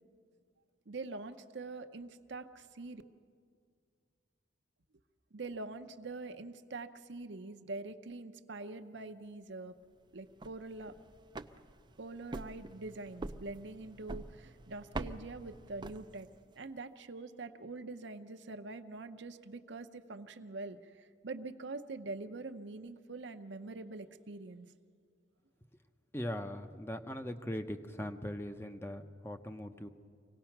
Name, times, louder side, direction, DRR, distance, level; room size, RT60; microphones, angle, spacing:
voice 1, 0.9-3.0 5.3-9.8 10.1-11.0 12.0-16.3 16.6-24.7, right 3 dB, 65° right, 8 dB, 0.8 m, -44 dB
sound 1, 10.2-16.5, right 2 dB, 25° right, 0.5 m, -46 dB
voice 2, 26.1-29.9, left 1 dB, 10° left, 7 dB, 0.7 m, -40 dB
25.5 x 17.5 x 5.9 m, 2.1 s
head